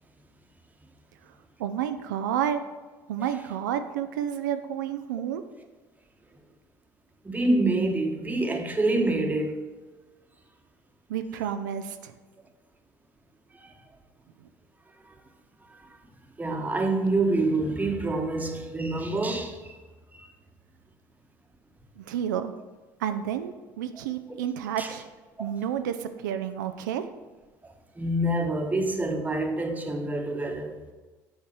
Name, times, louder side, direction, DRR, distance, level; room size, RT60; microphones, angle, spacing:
voice 1, 1.6-2.6 3.1-5.4 11.1-12.1 22.0-22.5 23.0-25.1 25.4-27.1, right 9 dB, 90° right, 0.4 m, -30 dB
voice 2, 7.2-9.6 13.5-13.7 15.0-15.1 15.7-16.0 16.4-19.8 20.1-20.3 24.8-24.9 25.4-25.5 27.6-30.8, right 2 dB, 15° right, 1.1 m, -27 dB
7.3 x 4.7 x 4.5 m
hypercardioid pair, 75°, 10 cm